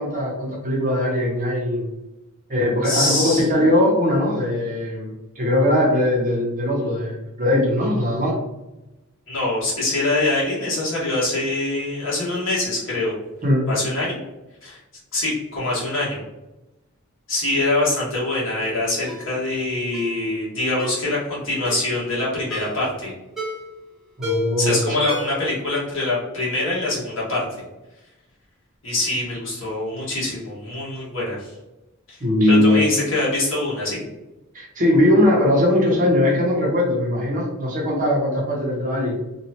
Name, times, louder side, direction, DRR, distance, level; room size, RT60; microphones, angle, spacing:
voice 1, 0.0-1.9 2.5-8.3 13.4-13.7 24.2-25.0 32.2-32.8 34.5-39.2, left 1 dB, 35° right, -2 dB, 0.7 m, -20 dB
voice 2, 2.8-3.5 9.3-13.1 13.7-14.2 14.6-14.8 15.1-16.2 17.3-23.1 24.6-27.4 28.8-31.5 32.1-32.2 32.5-34.0, left 2 dB, 65° left, -6 dB, 1.4 m, -24 dB
Ringtone, 19.1-19.3 19.9-20.2 20.8-21.0 21.6-21.9 22.5-22.8 23.4-23.7 24.2-24.6 25.1-25.5 25.8-25.9, left 1 dB, ahead, 0.7 m, -30 dB
3.0 x 2.3 x 2.8 m, 1.0 s
head